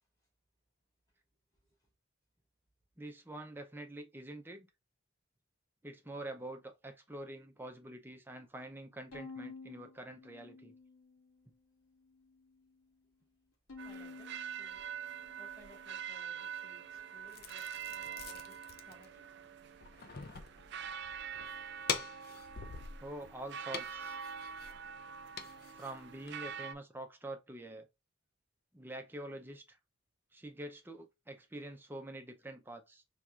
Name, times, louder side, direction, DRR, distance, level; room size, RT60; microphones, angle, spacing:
voice 1, 3.0-4.7 5.8-10.7 23.0-24.2 25.7-27.9 28.7-29.8 30.3-33.0, right 1 dB, 10° right, 0.6 m, -46 dB
Bowed string instrument, 9.1-11.5 11.9-12.7 13.7-16.2, left 4 dB, 75° left, 1.7 m, -52 dB
voice 2, 13.8-14.8 15.4-18.6 18.8-19.2 19.9-20.0, equal, 15° left, 2.3 m, -60 dB
sound 1, 13.8-26.7, right 7 dB, 55° right, 0.3 m, -45 dB
sound 2, 17.3-26.6, left 6 dB, 45° left, 0.6 m, -45 dB
4.6 x 3.5 x 2.4 m
head